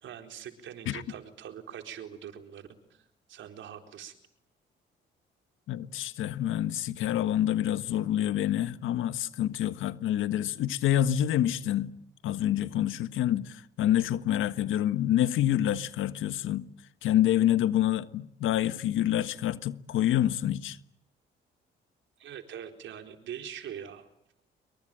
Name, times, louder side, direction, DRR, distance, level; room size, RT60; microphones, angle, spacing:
voice 1, 0.0-4.1 22.2-24.1, right 9 dB, 75° right, 4.2 m, -43 dB
voice 2, 5.7-11.9 12.2-16.7 17.0-20.8, left 12 dB, 85° left, 1.5 m, -27 dB
27.0 x 24.0 x 8.9 m
cardioid pair, 90°, 20 cm